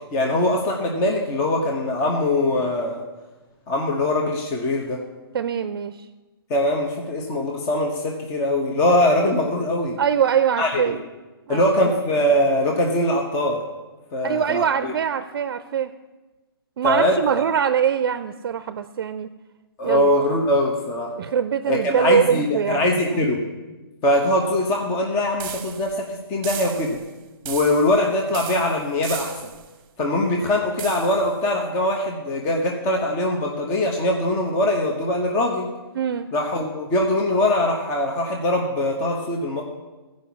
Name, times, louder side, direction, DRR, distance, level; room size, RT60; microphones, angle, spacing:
voice 1, 0.1-3.0 3.7-5.0 6.5-10.0 10.6-11.0 11.5-13.6 14.1-14.9 16.8-17.2 19.8-21.1 21.7-23.4 24.0-27.0 27.4-29.5 30.0-35.7 36.3-39.6, left 1 dB, 25° left, 1 dB, 1.0 m, -22 dB
voice 2, 5.3-6.0 10.0-11.0 11.5-11.9 14.2-15.9 16.8-19.3 19.8-20.1 21.2-23.3 36.0-36.3, right 8 dB, 60° right, 11 dB, 0.5 m, -23 dB
sound 1, 25.4-26.0 26.4-27.1 27.5-28.0 28.3-29.7 30.8-31.3, right 10 dB, 35° right, 0.9 m, -36 dB
14.5 x 5.2 x 7.1 m, 1.2 s
hypercardioid pair, 145°, 13 cm